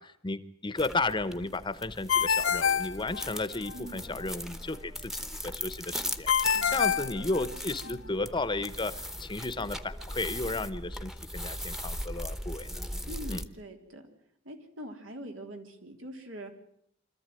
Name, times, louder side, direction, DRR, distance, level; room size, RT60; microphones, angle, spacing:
voice 1, 0.0-12.7 13.3-13.4, left 2 dB, 25° left, 14 dB, 1.0 m, -34 dB
sound 1, 0.8-13.5, equal, ahead, 1.1 m, -39 dB
Ringtone, 2.1-3.7 6.3-7.9, left 7 dB, 75° left, 0.8 m, -27 dB
voice 2, 6.5-7.2 7.8-8.0 13.1-14.1 14.4-16.5, right 1 dB, 85° right, 4 dB, 3.6 m, -44 dB
25.5 x 14.0 x 9.1 m, 0.74 s
head